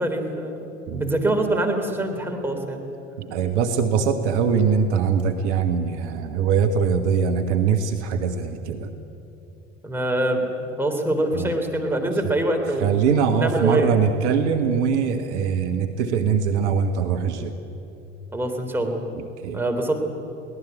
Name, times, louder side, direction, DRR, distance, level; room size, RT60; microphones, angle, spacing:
voice 1, 0.0-2.8 9.8-13.0 13.4-14.1 18.3-19.0 19.5-20.0, right 1 dB, 5° right, 2 dB, 3.5 m, -24 dB
voice 2, 3.2-8.9 11.3-11.5 12.8-17.5 19.2-19.6, right 6 dB, 65° right, 7 dB, 1.5 m, -22 dB
22.5 x 18.0 x 8.3 m, 2.9 s
figure-of-eight pair, 75°, 38 cm